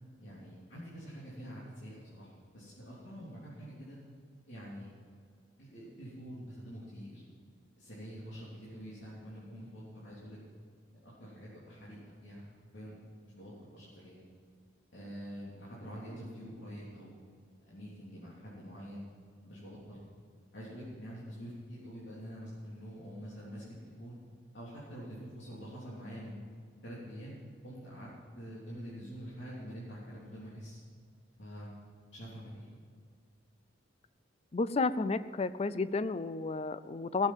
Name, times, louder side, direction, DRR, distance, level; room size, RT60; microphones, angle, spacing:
voice 1, 0.2-4.0 4.5-4.9 5.6-7.2 7.8-10.4 11.0-12.5 12.7-13.0 13.2-14.2 14.9-17.1 17.6-19.1 19.4-20.0 20.5-24.2 24.5-26.4 26.8-27.4 27.6-28.1 28.3-30.8 31.4-31.7 32.1-32.5, equal, 70° left, -8 dB, 3.4 m, -46 dB
voice 2, 34.5-37.3, left 3 dB, 30° left, 14 dB, 0.4 m, -32 dB
17.5 x 7.5 x 7.5 m, 2.1 s
head